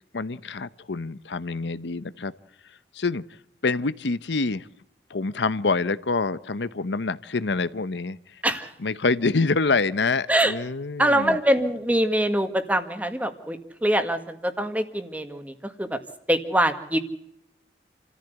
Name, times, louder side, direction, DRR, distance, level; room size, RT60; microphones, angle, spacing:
voice 1, 0.1-2.3 2.9-3.2 3.6-4.7 5.1-8.2 8.8-11.4, left 3 dB, 90° left, 15 dB, 0.8 m, -26 dB
voice 2, 11.0-16.0 16.3-17.0, right 1 dB, 10° right, 8 dB, 1.8 m, -24 dB
28.5 x 14.5 x 8.1 m, 0.77 s
head